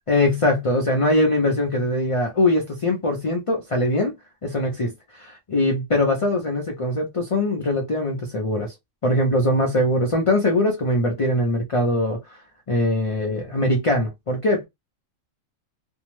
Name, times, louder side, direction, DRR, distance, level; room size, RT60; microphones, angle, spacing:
voice 1, 0.1-4.1 4.4-8.7 9.0-12.4 12.7-14.6, left 1 dB, 45° left, 0.4 m, -22 dB
2.7 x 2.1 x 3.0 m
omnidirectional pair, 1.4 m